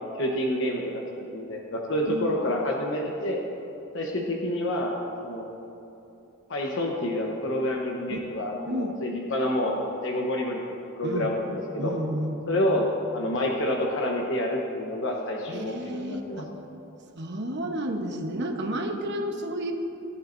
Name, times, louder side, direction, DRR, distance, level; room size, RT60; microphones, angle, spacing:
voice 1, 0.1-1.0 1.3-3.4 3.9-4.9 5.2-5.5 6.5-10.6 10.9-11.9 12.5-16.4, left 1 dB, 60° left, -1 dB, 1.1 m, -28 dB
voice 2, 2.1-2.4 8.1-8.2 8.7-8.9 11.0-11.3 11.8-12.4 15.5-16.5 17.1-19.7, equal, 55° right, 3 dB, 1.1 m, -31 dB
18.5 x 10.0 x 2.7 m, 2.9 s
head